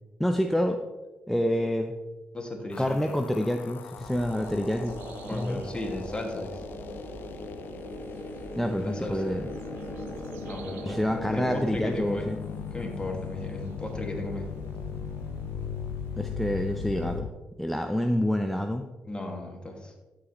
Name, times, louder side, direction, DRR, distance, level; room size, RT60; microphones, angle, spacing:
voice 1, 0.2-0.8 1.3-1.9 2.8-5.0 5.3-5.6 8.6-9.5 10.8-12.4 16.2-17.3 17.6-18.8, equal, 5° left, 5 dB, 0.6 m, -27 dB
voice 2, 2.3-3.0 5.3-6.6 8.8-9.3 10.4-11.0 11.3-12.3 12.7-14.5 19.1-19.9, left 1 dB, 25° left, 1 dB, 2.2 m, -35 dB
sound 1, 2.7-17.3, left 9 dB, 65° left, 0.4 m, -39 dB
sound 2, 4.0-17.2, right 3 dB, 85° right, 0.7 m, -46 dB
sound 3, 4.3-11.8, right 3 dB, 45° right, 1.1 m, -42 dB
12.5 x 5.0 x 3.2 m, 1.2 s
supercardioid pair, 55°, 4 cm